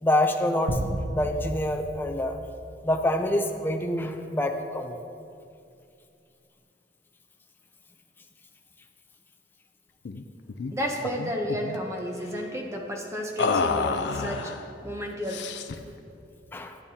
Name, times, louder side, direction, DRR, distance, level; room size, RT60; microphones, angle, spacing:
voice 1, 0.0-0.8 1.1-2.4 2.8-5.0 16.5-16.8, left 1 dB, 10° left, 3 dB, 0.4 m, -26 dB
sound 1, 0.7-3.3, right 1 dB, 65° right, 0.7 m, -33 dB
sound 2, 10.0-10.2 10.5-10.7 11.0-11.8 13.4-14.6 15.3-15.9, left 4 dB, 75° left, 0.4 m, -29 dB
voice 2, 10.6-15.5 16.0-16.1, equal, 15° right, 1 dB, 0.8 m, -32 dB
10.5 x 8.9 x 2.8 m, 2.5 s
head